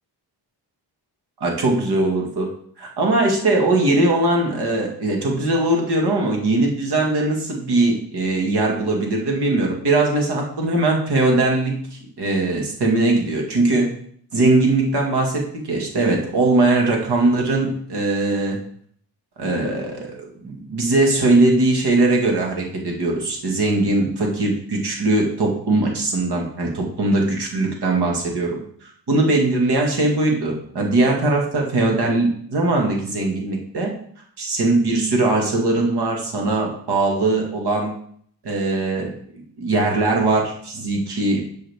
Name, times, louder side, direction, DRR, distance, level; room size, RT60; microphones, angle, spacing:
voice 1, 1.4-2.5 2.8-11.8 12.2-13.9 14.3-18.6 19.4-33.9 34.4-37.9 38.4-39.1 39.6-41.5, right 2 dB, 65° right, 0 dB, 2.0 m, -20 dB
10.5 x 6.3 x 3.6 m, 0.62 s
wide cardioid pair, 175°, 42 cm